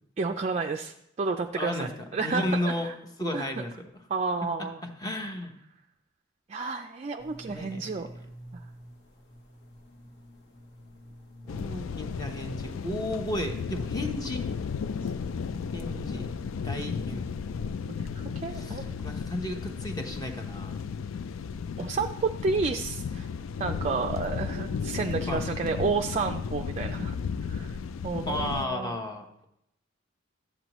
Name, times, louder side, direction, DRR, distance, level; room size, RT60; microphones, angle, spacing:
voice 1, 0.2-2.9 3.3-3.5 4.1-4.8 6.5-8.1 17.9-18.9 21.8-23.3 23.6-27.2 27.5-27.8 28.0-28.9, right 4 dB, 35° right, 4 dB, 0.4 m, -31 dB
voice 2, 1.6-2.9 3.2-3.9 4.8-5.5 7.5-8.1 11.4-14.5 15.7-16.3 16.6-17.3 18.5-20.8 25.3-25.4 28.3-29.5, left 1 dB, 20° left, 4 dB, 0.9 m, -34 dB
sound 1, 7.2-22.4, left 3 dB, 60° left, 1.2 m, -47 dB
sound 2, 11.5-28.7, left 6 dB, 80° left, 0.4 m, -34 dB
12.5 x 7.9 x 3.0 m, 0.80 s
head